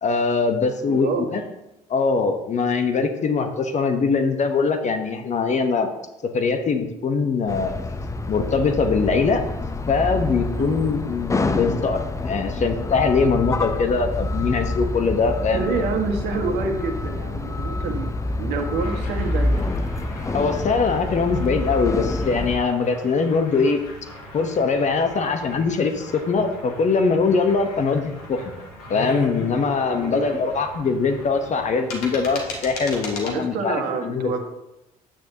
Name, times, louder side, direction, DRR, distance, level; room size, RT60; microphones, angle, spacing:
voice 1, 0.0-1.4 1.9-5.9 6.3-7.8 8.3-9.4 9.9-15.6 20.3-23.8 24.3-28.5 28.9-34.4, left 4 dB, 40° left, 7 dB, 1.1 m, -22 dB
voice 2, 0.9-1.4 10.6-10.8 15.5-18.1 18.4-19.7 29.9-30.5 33.2-34.4, right 4 dB, 60° right, 4 dB, 1.6 m, -27 dB
sound 1, 7.5-22.6, left 2 dB, 15° left, 0.8 m, -27 dB
sound 2, 18.8-33.4, left 2 dB, 75° left, 1.7 m, -38 dB
10.0 x 8.7 x 2.9 m, 0.92 s
figure-of-eight pair, 50°, 19 cm